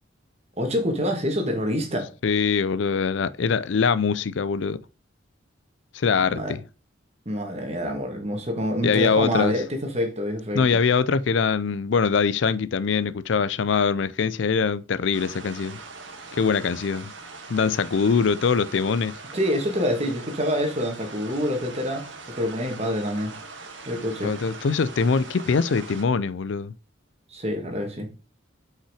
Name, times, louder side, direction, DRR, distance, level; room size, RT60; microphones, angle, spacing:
voice 1, 0.6-2.1 6.2-6.5 7.3-10.8 19.3-22.1 22.3-23.3 23.9-24.3 27.3-28.1, equal, 30° right, 1.8 m, -26 dB
voice 2, 2.2-4.8 5.9-6.6 8.8-9.6 10.5-15.8 16.3-17.1 17.5-19.2 24.2-26.7, left 5 dB, 65° left, 0.4 m, -23 dB
sound 1, 15.1-26.0, right 3 dB, 65° right, 1.7 m, -42 dB
5.9 x 5.6 x 4.8 m
head